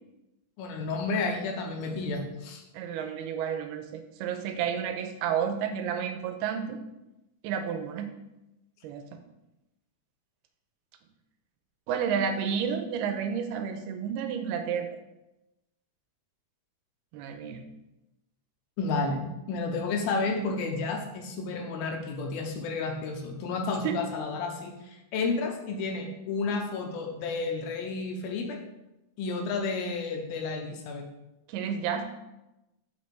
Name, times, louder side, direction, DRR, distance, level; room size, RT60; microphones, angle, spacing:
voice 1, 0.6-2.6 18.8-28.6 29.2-31.1, left 3 dB, 75° left, 3 dB, 2.5 m, -31 dB
voice 2, 2.7-6.8 7.4-8.1 8.8-9.0 11.9-14.9 17.1-17.6 23.8-24.0 31.5-32.0, right 7 dB, 90° right, 7 dB, 2.6 m, -31 dB
6.0 x 5.3 x 5.8 m, 0.96 s
omnidirectional pair, 4.6 m